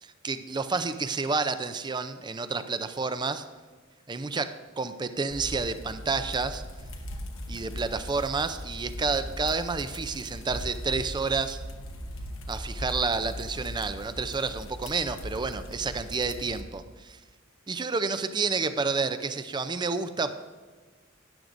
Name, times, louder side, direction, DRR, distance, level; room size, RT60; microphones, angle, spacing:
voice 1, 0.0-3.5 4.1-6.6 7.5-11.6 12.5-17.2 17.7-20.3, right 4 dB, 20° right, 11 dB, 0.5 m, -30 dB
sound 1, 5.3-16.6, equal, 85° left, 1.1 m, -39 dB
13.0 x 10.5 x 2.6 m, 1.4 s
head